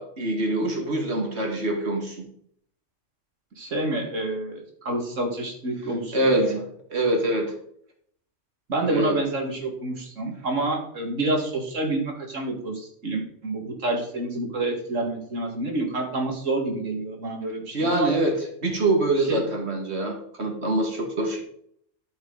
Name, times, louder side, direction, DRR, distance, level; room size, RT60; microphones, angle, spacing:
voice 1, 0.0-2.2 6.1-6.5 6.9-7.5 8.9-9.2 17.7-18.3 18.6-21.4, right 2 dB, 60° right, 2 dB, 2.5 m, -24 dB
voice 2, 3.6-4.6 4.8-6.6 8.7-18.1 19.3-19.4, right 2 dB, 80° right, 2 dB, 2.6 m, -28 dB
12.5 x 7.3 x 4.0 m, 0.66 s
omnidirectional pair, 1.3 m